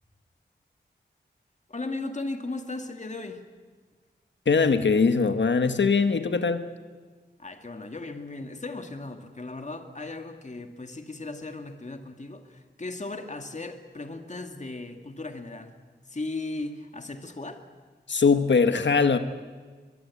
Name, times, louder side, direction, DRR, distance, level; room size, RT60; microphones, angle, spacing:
voice 1, 1.7-3.4 7.4-15.7 16.1-17.6, left 2 dB, 40° left, 6 dB, 2.2 m, -36 dB
voice 2, 4.4-6.6 18.1-19.2, left 5 dB, 80° left, 9 dB, 1.5 m, -21 dB
23.5 x 22.5 x 8.5 m, 1.5 s
wide cardioid pair, 90°, 18 cm